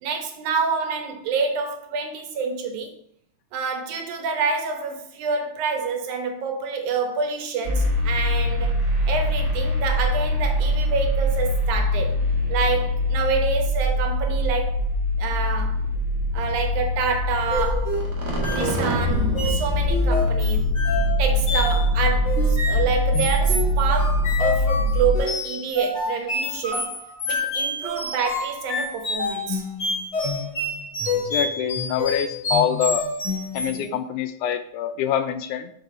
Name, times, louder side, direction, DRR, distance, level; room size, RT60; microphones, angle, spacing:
voice 1, 0.0-2.9 3.5-8.7 9.1-12.2 12.5-14.8 15.2-15.9 16.3-18.0 18.5-20.6 21.2-26.9 27.3-29.6 33.7-34.0, right 5 dB, 75° right, 2.4 m, -27 dB
sound 1, 7.6-25.2, left 1 dB, 50° right, 1.3 m, -23 dB
sound 2, 17.5-33.9, left 2 dB, 40° left, 1.0 m, -28 dB
voice 2, 31.1-33.0 33.5-35.7, left 9 dB, 80° left, 1.9 m, -25 dB
6.8 x 4.5 x 4.2 m
omnidirectional pair, 3.6 m